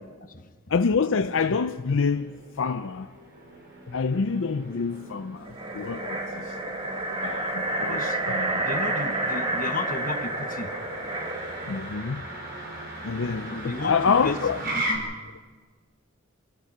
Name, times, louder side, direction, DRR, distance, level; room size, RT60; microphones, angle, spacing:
voice 1, 0.2-0.5 7.4-7.5 7.8-8.2 8.6-10.7 13.5-14.4 14.6-15.1, left 3 dB, 40° left, 1.2 m, -34 dB
voice 2, 0.7-3.1 3.9-5.5 5.7-6.5 7.2-8.6 11.7-12.3 13.0-14.6, left 5 dB, 65° left, 0.6 m, -26 dB
Motor vehicle (road), 1.9-15.0, right 1 dB, 50° right, 5.0 m, -38 dB
sound 1, 5.4-11.9, right 2 dB, 25° right, 2.0 m, -29 dB
28.5 x 15.5 x 6.1 m
head